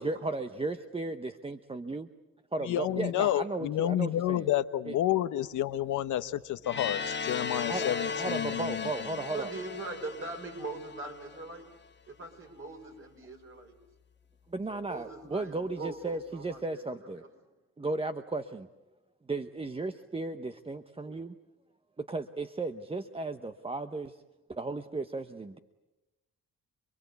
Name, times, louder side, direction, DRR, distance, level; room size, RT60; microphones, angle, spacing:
voice 1, 0.0-2.1 2.5-4.5 4.9-5.0 7.7-9.5 14.5-17.2 17.8-18.7 19.3-21.4 22.0-24.2 24.5-25.6, right 3 dB, 20° right, 9 dB, 1.0 m, -35 dB
voice 2, 2.6-8.9, left 12 dB, 80° left, 11 dB, 1.0 m, -30 dB
sound 1, 6.6-11.5, left 5 dB, 35° left, 1.5 m, -36 dB
voice 3, 9.2-11.7 12.1-13.7 14.7-17.3, right 3 dB, 45° right, 3 dB, 5.7 m, -41 dB
28.0 x 22.0 x 8.3 m, 1.0 s
cardioid pair, 90°, 30 cm